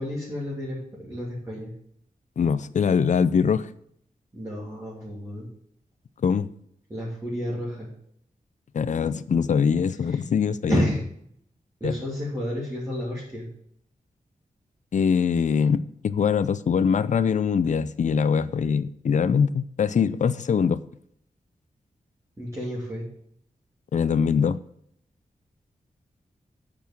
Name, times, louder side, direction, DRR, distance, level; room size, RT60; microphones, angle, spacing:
voice 1, 0.0-1.7 4.3-5.5 6.9-7.9 10.7-11.0 11.8-13.5 22.4-23.0, equal, 20° right, -7 dB, 2.9 m, -30 dB
voice 2, 2.4-3.7 6.2-6.5 8.7-10.8 11.8-11.9 14.9-20.8 23.9-24.6, left 6 dB, 60° left, 13 dB, 0.5 m, -23 dB
8.6 x 6.1 x 7.1 m, 0.68 s
wide cardioid pair, 145°, 14 cm